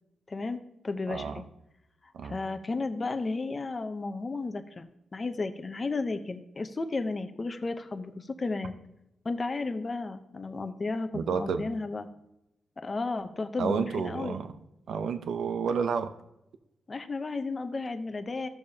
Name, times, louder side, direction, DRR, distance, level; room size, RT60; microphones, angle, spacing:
voice 1, 0.3-1.4 2.2-8.7 9.2-12.1 12.8-14.4 16.9-18.5, left 3 dB, 30° left, 8 dB, 0.7 m, -33 dB
voice 2, 1.1-1.4 2.1-2.4 11.1-11.7 13.6-14.5 14.9-16.1, right 6 dB, 80° right, 9 dB, 0.7 m, -30 dB
13.5 x 6.8 x 2.8 m, 0.86 s
cardioid pair, 100°, 0 cm